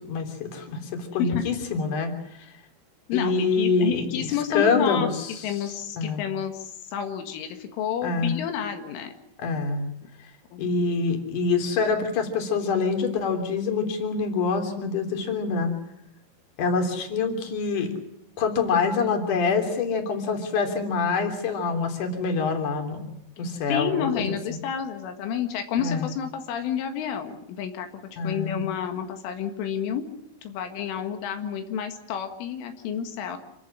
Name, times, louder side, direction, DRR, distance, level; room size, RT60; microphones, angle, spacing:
voice 1, 0.1-2.1 3.1-5.1 6.0-6.2 8.0-8.3 9.4-9.9 10.6-15.7 16.6-17.9 18.4-24.4 25.8-26.1 28.2-28.6, left 4 dB, 45° left, 5 dB, 4.5 m, -25 dB
voice 2, 3.1-5.1 5.4-9.1 10.0-10.1 10.5-10.6 23.7-30.1 30.4-33.4, left 8 dB, 85° left, 6 dB, 4.3 m, -30 dB
27.5 x 15.5 x 10.0 m, 0.77 s
omnidirectional pair, 5.6 m